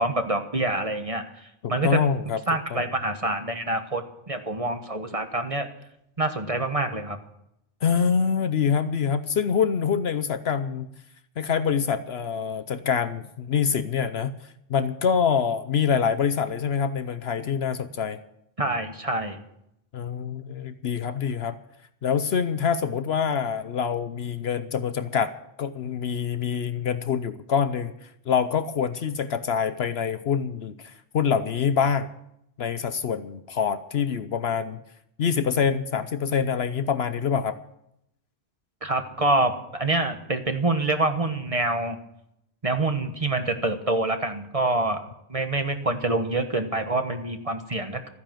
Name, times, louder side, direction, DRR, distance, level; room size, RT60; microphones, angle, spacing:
voice 1, 0.0-2.0 2.5-5.7 6.2-7.2 18.6-19.4 38.8-42.0 42.6-48.1, right 2 dB, 30° right, 7 dB, 1.3 m, -26 dB
voice 2, 1.6-2.4 2.7-2.9 7.8-10.9 11.4-18.2 19.9-21.6 22.0-25.3 25.6-32.1 32.6-34.8 35.2-37.6, left 7 dB, 60° left, 12 dB, 0.9 m, -25 dB
14.0 x 10.0 x 7.5 m, 0.79 s
omnidirectional pair, 1.3 m